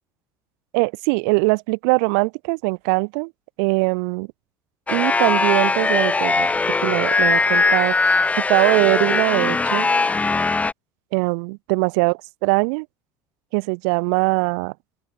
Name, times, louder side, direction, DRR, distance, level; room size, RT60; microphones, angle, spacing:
voice 1, 0.7-3.3 3.6-4.3 4.9-6.5 6.8-9.9 11.1-12.1 12.4-12.9 13.5-14.7, right 36 dB, 80° right, 1.2 m, -21 dB
sound 1, 4.9-10.7, left 3 dB, 15° left, 4.9 m, -20 dB
open air
supercardioid pair, 115°, 9 cm